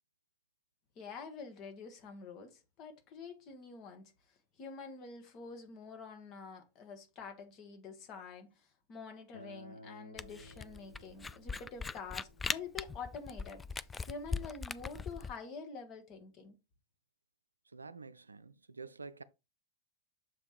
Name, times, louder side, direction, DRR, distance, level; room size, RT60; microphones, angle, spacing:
voice 1, 0.9-16.6, left 5 dB, 35° left, 1.6 m, -47 dB
Acoustic guitar, 9.3-14.5, left 1 dB, 80° left, 0.8 m, -57 dB
Camera, 10.2-15.3, left 4 dB, 15° left, 0.3 m, -39 dB
voice 2, 17.7-19.2, right 4 dB, 80° right, 0.4 m, -48 dB
7.1 x 3.5 x 4.4 m
figure-of-eight pair, 90°, 0 cm